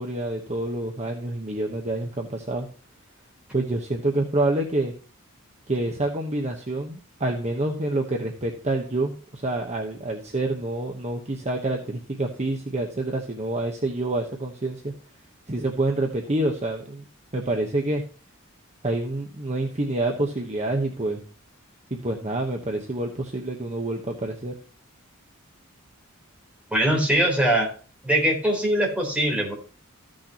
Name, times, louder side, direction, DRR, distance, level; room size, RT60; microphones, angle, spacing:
voice 1, 0.0-2.7 3.5-4.9 5.7-14.9 15.5-17.0 17.3-18.0 18.8-21.2 21.9-24.5, right 2 dB, 30° right, 1 dB, 1.1 m, -27 dB
voice 2, 26.7-27.7 28.0-29.5, right 1 dB, 5° right, -1 dB, 3.7 m, -22 dB
15.0 x 6.5 x 2.9 m, 0.38 s
head